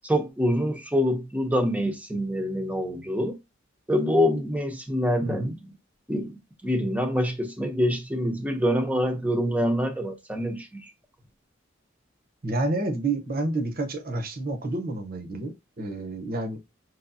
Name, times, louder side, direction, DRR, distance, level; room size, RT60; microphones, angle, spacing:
voice 1, 0.0-3.4 3.9-5.6 6.1-6.3 6.6-10.9, equal, 5° right, 0.8 m, -25 dB
voice 2, 5.2-5.5 12.4-16.6, right 2 dB, 50° right, 0.9 m, -29 dB
5.7 x 3.1 x 2.7 m
head